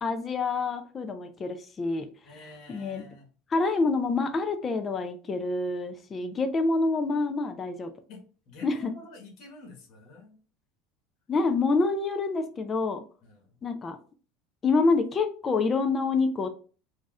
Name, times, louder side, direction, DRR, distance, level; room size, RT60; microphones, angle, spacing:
voice 1, 0.0-2.1 2.7-3.0 3.5-7.9 8.6-8.9 11.3-13.0 13.6-14.0 14.6-16.5, left 3 dB, 25° left, 7 dB, 0.4 m, -27 dB
voice 2, 2.2-3.3 8.1-10.4 13.2-13.6, left 2 dB, 50° left, 0 dB, 1.2 m, -49 dB
2.5 x 2.3 x 4.0 m, 0.38 s
supercardioid pair, 135°, 0 cm